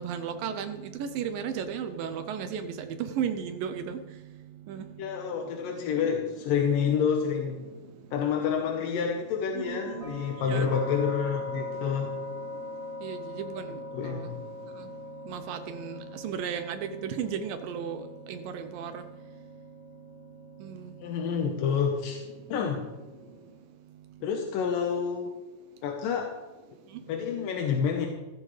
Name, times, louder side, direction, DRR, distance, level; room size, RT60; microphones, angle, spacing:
voice 1, 0.0-4.0 4.7-4.8 9.6-10.1 10.5-10.7 13.0-13.8 14.0-14.2 15.3-18.0 18.3-19.0 20.6-20.7, right 8 dB, 85° right, 8 dB, 1.9 m, -34 dB
voice 2, 5.0-7.6 8.1-12.1 13.9-14.4 21.0-22.2 22.5-22.8 24.2-25.3 25.8-26.3 27.1-28.1, left 7 dB, 70° left, 2 dB, 2.3 m, -28 dB
sound 1, 9.6-23.5, left 2 dB, 25° left, 5.0 m, -42 dB
15.5 x 14.0 x 3.3 m, 1.2 s
omnidirectional pair, 4.9 m